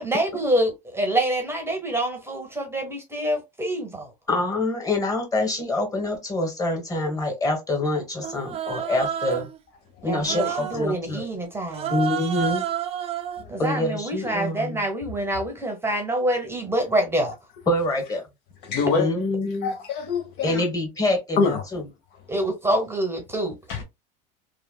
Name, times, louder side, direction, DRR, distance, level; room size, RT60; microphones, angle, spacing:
voice 1, 0.0-4.1 10.0-12.0 13.5-17.3 22.3-23.5, right 1 dB, 10° right, 0.8 m, -26 dB
voice 2, 4.3-9.5 10.0-11.3 11.9-12.6 13.6-14.8 17.7-18.3 19.0-19.7 20.4-21.8, left 2 dB, 15° left, 1.3 m, -26 dB
Human voice, 8.2-9.6 10.2-10.9 11.7-13.4, right 10 dB, 30° right, 0.5 m, -30 dB
voice 3, 18.6-19.1 19.6-20.6 21.4-21.6 23.7-23.8, left 5 dB, 60° left, 0.8 m, -25 dB
3.2 x 2.1 x 2.2 m
supercardioid pair, 105°, 21 cm